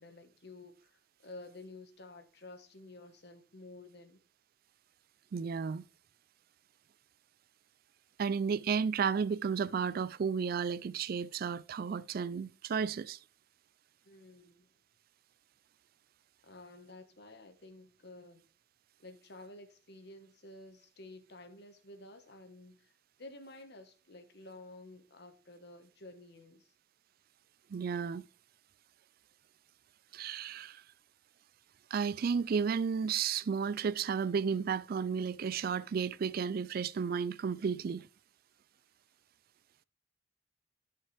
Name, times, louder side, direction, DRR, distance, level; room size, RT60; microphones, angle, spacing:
voice 1, 0.0-4.2 14.0-14.7 16.4-18.4 19.0-22.9 23.2-26.7, left 2 dB, 60° left, 1.3 m, -52 dB
voice 2, 5.3-5.8 8.2-13.2 27.7-28.2 30.1-30.8 31.9-38.1, right 6 dB, 50° right, 0.4 m, -33 dB
13.0 x 5.8 x 3.3 m
head